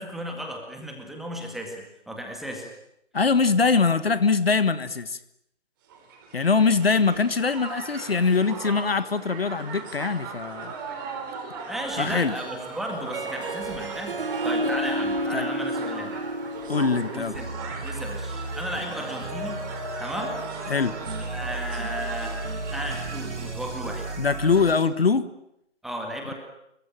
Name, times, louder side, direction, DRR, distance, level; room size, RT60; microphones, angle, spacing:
voice 1, 0.0-1.8 2.1-2.7 11.7-16.2 17.1-19.6 20.0-20.4 21.2-22.3 22.7-24.1 25.8-26.3, equal, ahead, 1 dB, 2.1 m, -34 dB
voice 2, 3.1-5.2 6.3-10.7 12.0-12.3 15.3-15.5 16.7-17.4 20.7-20.9 24.2-25.3, left 4 dB, 55° left, 13 dB, 1.6 m, -22 dB
Crowd, 5.9-23.3, right 3 dB, 20° right, 4.3 m, -38 dB
Harp, 12.2-17.8, right 1 dB, 50° right, 2.4 m, -31 dB
sound 1, 17.3-24.9, right 3 dB, 70° right, 3.2 m, -35 dB
26.5 x 23.5 x 9.0 m, 0.80 s
figure-of-eight pair, 155°, 36 cm